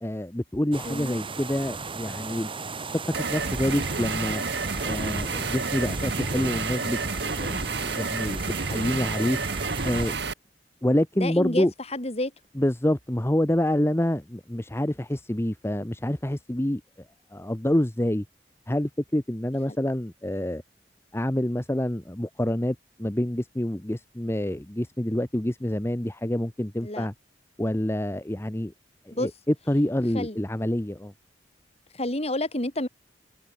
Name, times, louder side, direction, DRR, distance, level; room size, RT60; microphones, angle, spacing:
voice 1, 0.0-2.5 3.3-4.4 4.8-9.4 9.8-10.2 10.8-11.7 12.5-16.8 17.3-18.2 18.7-20.6 21.1-27.1 27.6-28.7 29.1-31.1, left 1 dB, 15° left, 1.0 m, -27 dB
sound 1, 0.7-10.2, right 3 dB, 30° right, 2.8 m, -36 dB
voice 2, 0.8-1.2 11.2-11.7 11.9-12.3 26.8-27.1 29.1-29.3 30.1-30.4 31.9-32.9, left 1 dB, 35° left, 4.2 m, -29 dB
sound 2, 3.1-10.3, right 4 dB, 70° right, 2.1 m, -30 dB
open air
head